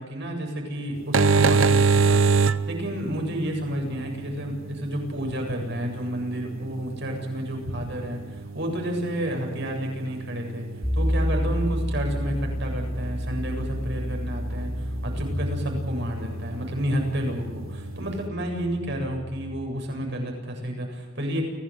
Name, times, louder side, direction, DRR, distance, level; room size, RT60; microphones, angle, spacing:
voice 1, 0.0-10.7 10.9-21.4, equal, 55° right, 2 dB, 7.8 m, -30 dB
sound 1, 1.0-18.3, right 4 dB, 70° right, 0.9 m, -28 dB
sound 2, 10.8-19.6, equal, 10° left, 2.7 m, -30 dB
29.5 x 18.5 x 8.1 m, 1.4 s
head